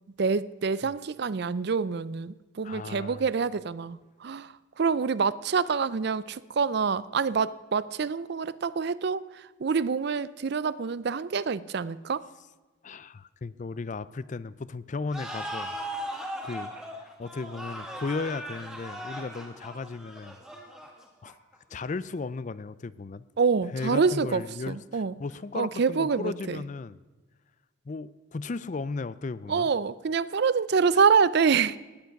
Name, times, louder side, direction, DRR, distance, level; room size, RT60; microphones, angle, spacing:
voice 1, 0.2-12.2 23.4-25.1 25.5-26.6 29.5-31.8, right 5 dB, 50° right, 18 dB, 0.4 m, -26 dB
voice 2, 2.6-3.3 12.8-15.7 16.4-16.7 17.0-20.4 21.2-21.3 21.7-23.2 23.7-27.0 27.9-29.7, left 3 dB, 35° left, 17 dB, 0.4 m, -35 dB
sound 1, 15.1-21.6, equal, ahead, 2.0 m, -38 dB
17.5 x 10.5 x 5.8 m, 1.3 s
head